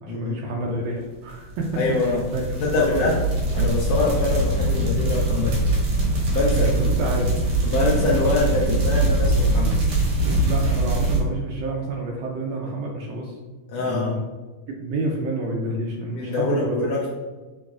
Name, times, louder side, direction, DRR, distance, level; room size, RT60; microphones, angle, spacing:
voice 1, 0.0-2.4 2.7-3.1 6.5-7.3 9.6-9.8 10.5-13.3 13.8-14.2 14.7-16.8, right 2 dB, 85° right, -1 dB, 1.4 m, -29 dB
sound 1, 1.4-11.2, right 2 dB, 65° right, 1.4 m, -22 dB
voice 2, 1.8-2.2 2.6-3.2 3.5-5.7 6.3-6.7 7.6-9.7 13.7-14.2 16.1-17.1, left 3 dB, 80° left, -3 dB, 1.4 m, -24 dB
6.2 x 3.0 x 2.3 m, 1.3 s
omnidirectional pair, 3.4 m